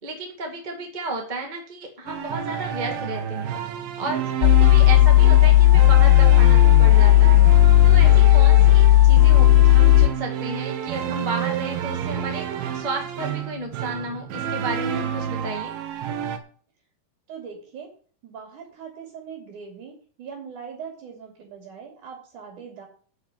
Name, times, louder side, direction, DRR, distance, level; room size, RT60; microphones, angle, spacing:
voice 1, 0.0-3.5 4.0-7.4 7.8-15.7, right 2 dB, 20° right, 1 dB, 1.5 m, -33 dB
sound 1, 2.1-16.4, right 9 dB, 80° right, 2.9 m, -29 dB
sound 2, 4.4-10.1, left 15 dB, 85° left, 2.3 m, -13 dB
voice 2, 17.3-17.9 18.2-19.9 20.2-22.8, right 6 dB, 60° right, 0 dB, 4.2 m, -40 dB
8.6 x 6.6 x 8.4 m, 0.43 s
omnidirectional pair, 4.0 m